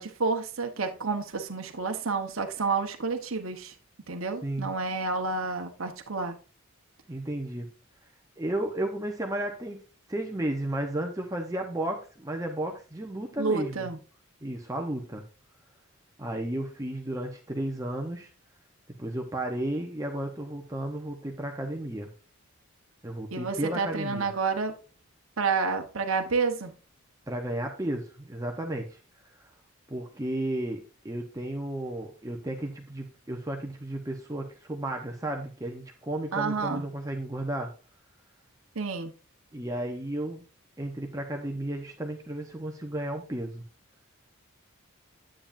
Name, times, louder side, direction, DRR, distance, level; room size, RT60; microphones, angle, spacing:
voice 1, 0.0-3.7 4.1-6.4 13.4-14.0 23.3-24.7 25.4-26.7 36.3-36.9 38.7-39.1, right 4 dB, 65° right, 1.0 m, -29 dB
voice 2, 7.1-7.7 8.4-9.8 10.1-13.9 14.4-15.2 16.2-18.3 19.0-22.1 23.0-24.3 27.3-29.0 29.9-37.7 39.5-40.4 40.8-43.6, right 1 dB, 15° right, 0.9 m, -33 dB
9.6 x 8.8 x 2.6 m
head